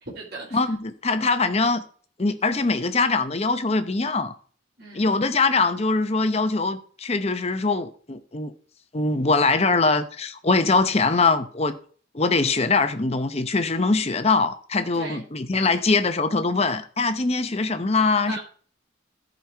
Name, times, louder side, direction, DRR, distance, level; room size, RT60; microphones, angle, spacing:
voice 1, 0.0-0.6 4.8-5.2 14.9-15.2 18.3-18.4, right 2 dB, 55° right, 3.1 m, -37 dB
voice 2, 0.5-1.8 2.2-4.3 4.9-8.5 8.9-11.8 12.1-18.4, left 3 dB, 30° left, 0.8 m, -22 dB
13.5 x 5.3 x 4.5 m
head